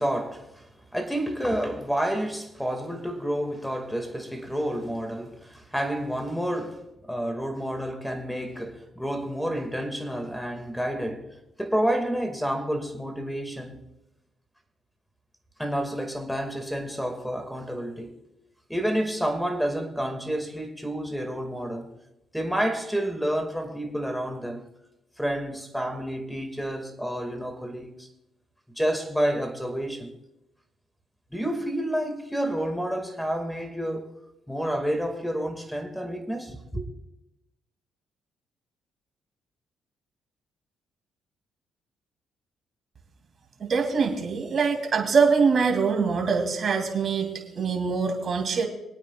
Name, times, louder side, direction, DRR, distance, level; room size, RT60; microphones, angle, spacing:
voice 1, 0.0-13.8 15.6-18.1 18.7-21.9 22.3-24.7 25.2-28.1 28.8-30.1 31.3-34.1 34.5-36.9, equal, ahead, 2.1 m, -29 dB
voice 2, 43.6-48.7, right 5 dB, 50° right, 2.7 m, -24 dB
26.0 x 9.0 x 2.4 m
cardioid pair, 90°, 0 cm